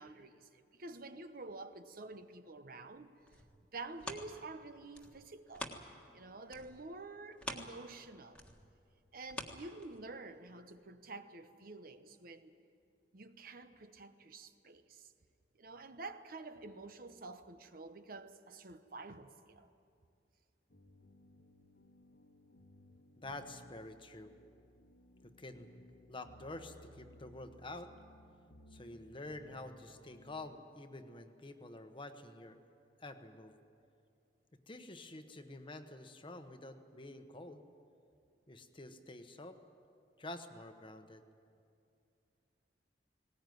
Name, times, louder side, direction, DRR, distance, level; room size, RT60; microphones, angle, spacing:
voice 1, 0.0-3.1 3.7-5.7 6.1-8.4 9.1-12.6 13.1-15.1 15.5-19.7, right 3 dB, 55° right, 9 dB, 1.0 m, -49 dB
sound 1, 3.0-6.2 6.5-10.3 10.8-10.9, left 1 dB, 5° left, 1.6 m, -48 dB
sound 2, 20.7-30.6, left 1 dB, 90° left, 1.9 m, -61 dB
voice 2, 23.2-24.3 25.2-25.8 26.1-27.9 28.7-32.6 33.0-33.6 34.7-37.6 38.5-39.6 40.2-41.2, left 2 dB, 30° left, 7 dB, 1.1 m, -48 dB
19.5 x 18.5 x 9.4 m, 2.4 s
head